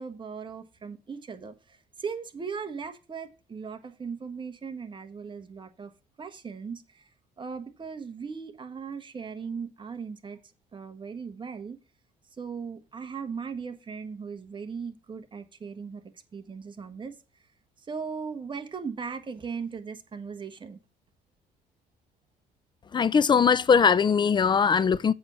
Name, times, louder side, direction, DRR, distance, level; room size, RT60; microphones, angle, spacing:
voice 1, 0.0-5.9 6.2-7.1 7.4-10.4 10.7-11.8 12.4-16.0 16.3-17.1 17.9-20.8, right 5 dB, 30° right, 1.4 m, -38 dB
voice 2, 22.9-25.1, left 6 dB, 25° left, 0.5 m, -21 dB
8.0 x 6.2 x 5.7 m
cardioid pair, 110°, 17 cm